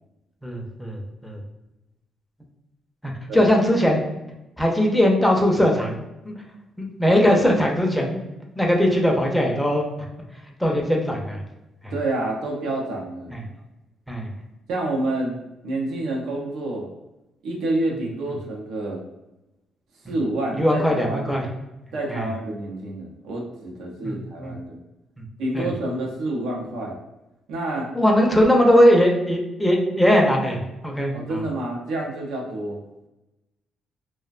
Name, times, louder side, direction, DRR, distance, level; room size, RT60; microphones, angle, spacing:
voice 1, 0.4-1.4 3.0-4.0 4.6-6.0 6.2-6.3 6.8-8.2 8.6-9.9 10.6-11.4 11.8-11.9 13.3-13.4 14.1-14.3 20.5-21.4 22.1-22.3 24.0-24.2 24.4-24.5 25.2-25.3 25.5-25.7 27.9-31.4, equal, 5° left, 0 dB, 0.5 m, -20 dB
voice 2, 11.9-13.4 14.7-16.9 17.4-19.0 20.1-21.4 21.9-24.8 25.4-27.0 27.5-27.9 31.1-32.8, right 2 dB, 85° right, -1 dB, 0.5 m, -28 dB
2.4 x 2.1 x 2.4 m, 0.95 s
cardioid pair, 90°, 0 cm